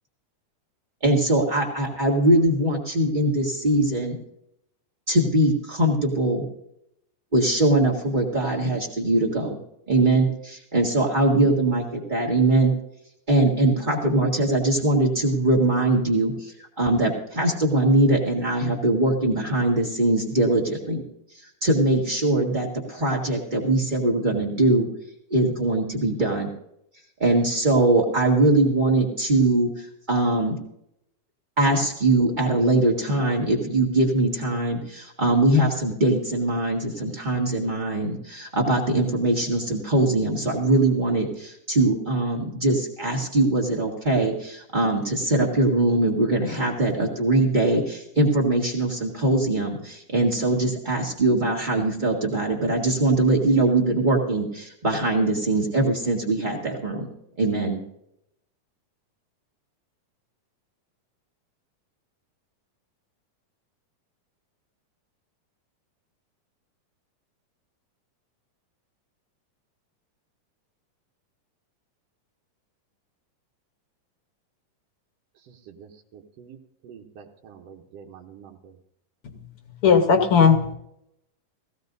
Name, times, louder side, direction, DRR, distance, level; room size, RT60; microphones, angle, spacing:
voice 1, 1.0-4.2 5.1-6.5 7.3-9.6 9.9-12.7 13.3-21.0 21.6-24.9 25.3-26.5 27.2-30.6 31.6-57.1 57.4-57.8, right 2 dB, 30° right, -1 dB, 0.8 m, -22 dB
voice 2, 75.5-76.6 76.8-78.7, right 7 dB, 65° right, 2 dB, 1.7 m, -47 dB
voice 3, 79.8-80.7, left 6 dB, 60° left, 5 dB, 1.5 m, -17 dB
19.0 x 15.5 x 2.7 m, 0.78 s
omnidirectional pair, 3.8 m